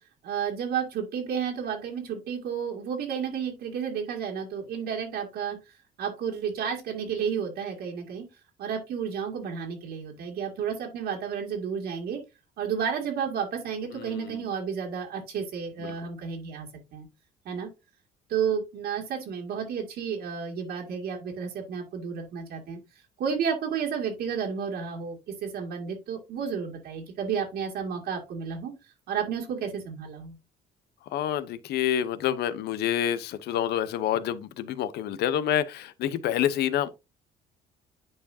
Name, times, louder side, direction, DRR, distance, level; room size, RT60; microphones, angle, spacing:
voice 1, 0.2-8.3 8.6-12.2 12.6-17.1 17.5-17.7 18.3-22.8 23.2-28.7 29.1-30.4, right 7 dB, 70° right, 2.2 m, -32 dB
voice 2, 13.9-14.5 15.8-15.9 31.1-36.9, left 10 dB, 75° left, 0.8 m, -28 dB
9.9 x 4.8 x 2.7 m
cardioid pair, 110°, 17 cm